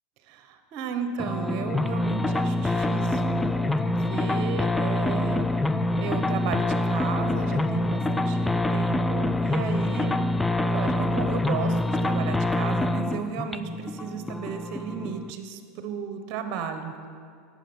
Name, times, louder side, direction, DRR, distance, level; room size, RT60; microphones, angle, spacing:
voice 1, 0.3-3.7 4.1-5.4 6.0-10.2 10.7-16.9, right 7 dB, 60° right, 8 dB, 0.9 m, -34 dB
sound 1, 1.2-15.3, left 1 dB, 10° left, 0.4 m, -26 dB
9.2 x 6.3 x 7.1 m, 2.3 s
hypercardioid pair, 105°, 0 cm